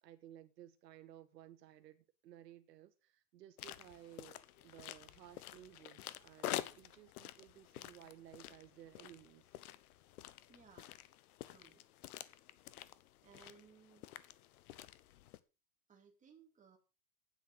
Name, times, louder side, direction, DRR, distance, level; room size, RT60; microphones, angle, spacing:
voice 1, 0.0-9.5, right 12 dB, 80° right, 1.7 m, -57 dB
sound 1, 3.6-15.4, left 14 dB, 65° left, 1.1 m, -49 dB
voice 2, 10.5-11.0 11.4-11.8 13.2-14.1 15.9-16.8, right 6 dB, 15° right, 2.6 m, -63 dB
9.2 x 8.2 x 6.4 m
supercardioid pair, 145°, 48 cm